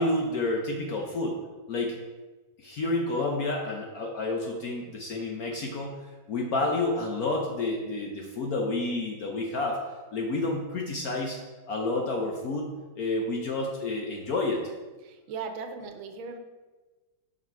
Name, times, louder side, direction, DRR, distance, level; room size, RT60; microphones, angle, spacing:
voice 1, 0.0-1.4 1.7-2.0 2.6-6.0 6.3-9.8 10.1-11.4 11.7-14.6, left 2 dB, 65° left, 1 dB, 1.0 m, -29 dB
voice 2, 15.0-16.4, right 5 dB, 80° right, 6 dB, 1.4 m, -38 dB
5.8 x 5.1 x 4.5 m, 1.3 s
omnidirectional pair, 2.2 m